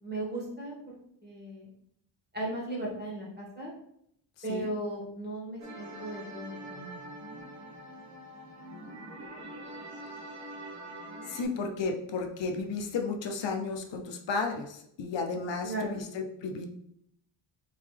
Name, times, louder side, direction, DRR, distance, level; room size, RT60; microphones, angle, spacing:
voice 1, 0.0-0.7 1.2-1.7 2.3-3.7 4.4-7.0 15.6-16.0, right 1 dB, 20° right, -4 dB, 1.7 m, -36 dB
sound 1, 5.6-11.4, right 1 dB, 40° right, 0.9 m, -44 dB
voice 2, 11.3-16.7, left 4 dB, 70° left, 3 dB, 0.7 m, -33 dB
3.8 x 3.7 x 3.3 m, 0.72 s
wide cardioid pair, 130°, 46 cm